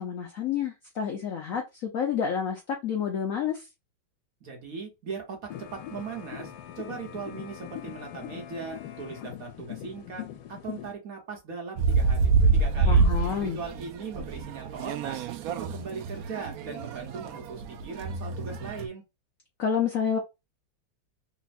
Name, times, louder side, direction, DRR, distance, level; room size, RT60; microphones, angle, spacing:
voice 1, 0.0-3.7 12.9-13.6 19.6-20.2, left 7 dB, 70° left, 2 dB, 0.8 m, -29 dB
voice 2, 4.4-5.4 5.7-6.5 6.8-10.2 10.5-13.1 13.4-15.2 15.5-19.0, right 5 dB, 50° right, 1 dB, 1.3 m, -39 dB
sound 1, 5.5-10.9, left 11 dB, 85° left, 1.4 m, -41 dB
sound 2, 11.8-18.9, right 4 dB, 80° right, 0.8 m, -26 dB
3.5 x 2.2 x 4.0 m, 0.24 s
omnidirectional pair, 2.1 m